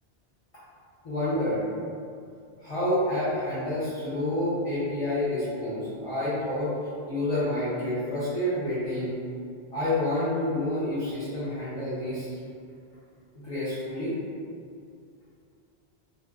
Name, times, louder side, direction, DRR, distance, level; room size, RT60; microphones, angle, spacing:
voice 1, 1.0-1.6 2.6-6.8 7.1-9.2 9.7-12.3 13.4-14.1, left 1 dB, 35° left, -14 dB, 0.9 m, -28 dB
2.6 x 2.3 x 3.4 m, 2.3 s
omnidirectional pair, 1.1 m